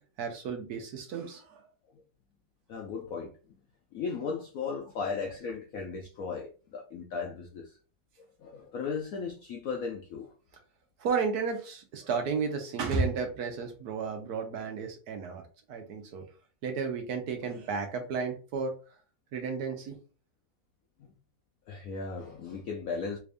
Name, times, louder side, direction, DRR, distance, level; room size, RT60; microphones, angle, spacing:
voice 1, 0.2-1.6 11.0-15.4 15.7-16.2 16.6-18.7 19.3-20.0, right 5 dB, 65° right, 1.1 m, -33 dB
voice 2, 2.7-3.3 3.9-7.8 8.2-10.3 21.0-21.1 21.7-23.2, left 5 dB, 75° left, 0.8 m, -36 dB
3.4 x 2.5 x 3.3 m
omnidirectional pair, 2.0 m